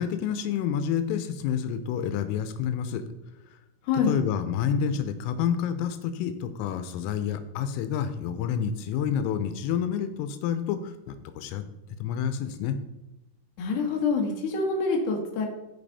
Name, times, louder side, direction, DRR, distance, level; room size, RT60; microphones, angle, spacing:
voice 1, 0.0-3.0 4.1-11.6 12.0-12.8, left 8 dB, 85° left, 9 dB, 3.3 m, -29 dB
voice 2, 13.6-15.5, left 4 dB, 55° left, 0 dB, 2.3 m, -26 dB
15.5 x 5.4 x 4.1 m, 0.98 s
omnidirectional pair, 5.8 m